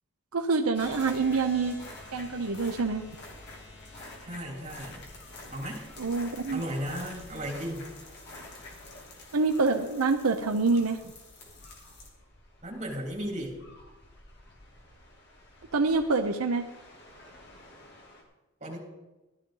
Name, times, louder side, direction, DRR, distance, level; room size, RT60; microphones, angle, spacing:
voice 1, 0.3-1.8 2.1-3.0 6.0-6.6 9.3-11.0 15.7-16.7, right 4 dB, 85° right, 5 dB, 0.8 m, -26 dB
sound 1, 0.7-18.2, left 2 dB, 50° left, 2.6 m, -48 dB
voice 2, 4.2-5.0 5.5-5.9 6.5-7.9 12.6-13.5 18.6-18.8, equal, 35° right, -4 dB, 3.8 m, -35 dB
15.0 x 12.0 x 3.9 m, 1.1 s
head